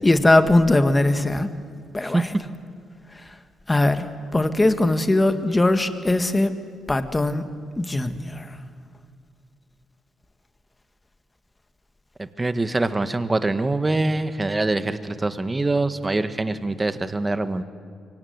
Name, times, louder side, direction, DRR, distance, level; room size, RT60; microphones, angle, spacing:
voice 1, 0.0-1.5 1.9-2.4 3.7-6.5 6.9-7.4 7.8-8.5, left 2 dB, 15° left, 9 dB, 1.8 m, -20 dB
voice 2, 12.2-17.6, right 2 dB, 20° right, 10 dB, 1.5 m, -24 dB
24.5 x 24.0 x 9.5 m, 2.1 s
cardioid pair, 90°, 0 cm